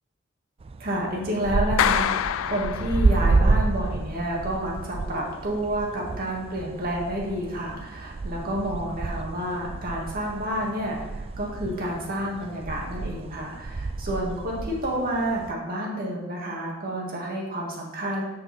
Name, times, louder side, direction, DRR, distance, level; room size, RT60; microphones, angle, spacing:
sound 1, 0.6-15.5, right 3 dB, 30° right, 0.3 m, -29 dB
voice 1, 0.8-18.2, equal, 45° right, -3 dB, 2.0 m, -29 dB
Clapping, 1.8-3.5, left 9 dB, 90° left, 0.3 m, -26 dB
8.4 x 5.7 x 4.3 m, 1.1 s
head